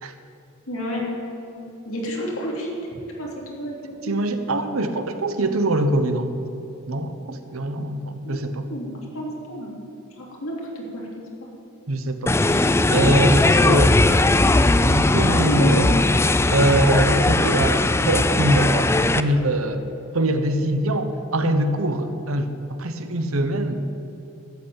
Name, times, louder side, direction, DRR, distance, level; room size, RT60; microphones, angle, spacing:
voice 1, 0.7-1.1 1.6-2.7 3.2-3.8 4.1-4.2 8.2-8.4 8.7-8.9 9.1-9.7 10.1-11.5 15.5-15.8, equal, 85° left, -3 dB, 3.5 m, -31 dB
voice 2, 4.0-6.3 6.9-8.7 11.9-14.0 14.8-16.0 16.5-19.8 20.1-22.5 22.8-23.9, right 1 dB, 90° right, 8 dB, 1.1 m, -23 dB
sound 1, 12.3-19.2, left 2 dB, 10° left, 0.3 m, -18 dB
13.0 x 8.0 x 9.0 m, 2.9 s
head